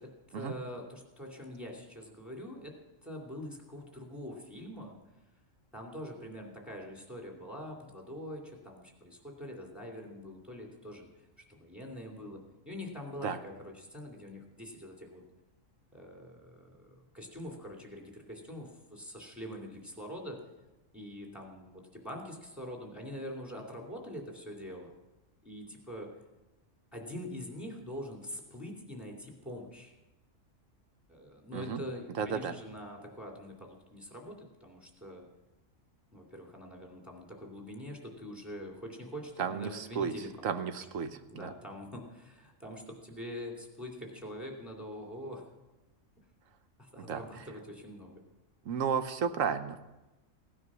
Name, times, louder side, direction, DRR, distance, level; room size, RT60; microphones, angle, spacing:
voice 1, 0.0-2.8 3.0-5.0 5.7-11.1 11.5-12.4 12.7-15.2 15.9-20.4 20.9-24.9 25.4-26.1 26.9-29.9 31.1-35.3 36.1-40.7 41.3-45.5 46.8-48.2, equal, ahead, 0 dB, 2.5 m, -44 dB
voice 2, 32.2-32.5 39.4-40.1 40.4-41.5 47.1-47.2 48.7-49.8, right 6 dB, 85° right, 10 dB, 1.2 m, -33 dB
16.5 x 9.7 x 6.1 m, 1.1 s
omnidirectional pair, 1.3 m